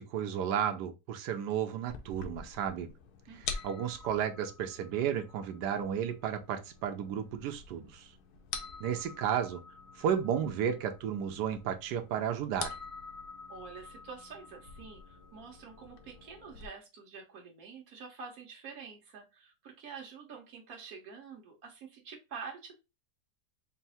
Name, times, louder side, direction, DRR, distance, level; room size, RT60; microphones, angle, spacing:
voice 1, 0.0-2.9 3.4-8.1 8.8-9.6 9.9-12.7, right 8 dB, 85° right, 1.2 m, -33 dB
sound 1, 1.9-16.7, left 6 dB, 75° left, 1.2 m, -46 dB
voice 2, 3.3-3.8 13.5-22.8, right 5 dB, 60° right, 1.6 m, -47 dB
4.5 x 2.0 x 4.1 m
omnidirectional pair, 1.8 m